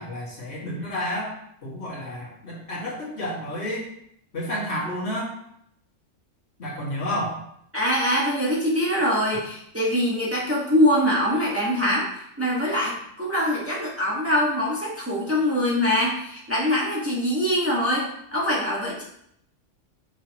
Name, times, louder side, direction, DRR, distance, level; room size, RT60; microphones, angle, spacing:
voice 1, 0.0-1.3 1.6-3.8 4.3-5.3 6.6-7.4, left 1 dB, 55° left, -5 dB, 2.1 m, -30 dB
voice 2, 7.7-19.0, equal, 10° right, -5 dB, 1.5 m, -23 dB
6.2 x 6.0 x 3.0 m, 0.72 s
omnidirectional pair, 1.3 m